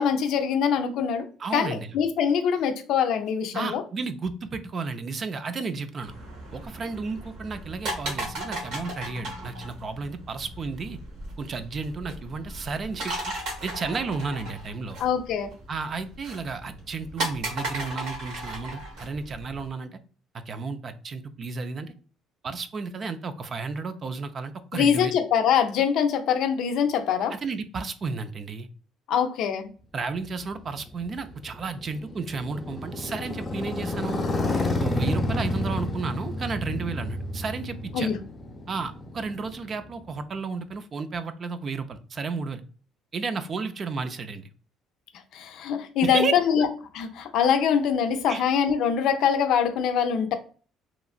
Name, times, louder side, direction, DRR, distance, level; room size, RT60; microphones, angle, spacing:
voice 1, 0.0-1.3 1.5-3.8 15.0-15.5 24.7-27.3 29.1-29.7 37.9-38.2 45.3-46.7 46.9-50.3, left 7 dB, 70° left, 7 dB, 0.4 m, -23 dB
voice 2, 1.4-1.9 3.5-6.1 6.5-11.0 11.4-13.3 13.6-15.0 15.7-20.0 20.5-21.9 22.4-25.1 27.3-28.7 29.9-34.2 34.8-38.1 38.7-42.6 43.1-44.5 46.0-46.7 48.3-48.4, right 4 dB, 35° right, 10 dB, 0.3 m, -32 dB
sound 1, 6.0-19.7, right 1 dB, 75° right, 1.2 m, -36 dB
Motorcycle, 30.2-40.2, left 2 dB, 20° left, 0.7 m, -30 dB
2.9 x 2.5 x 2.4 m, 0.40 s
cardioid pair, 120°, 0 cm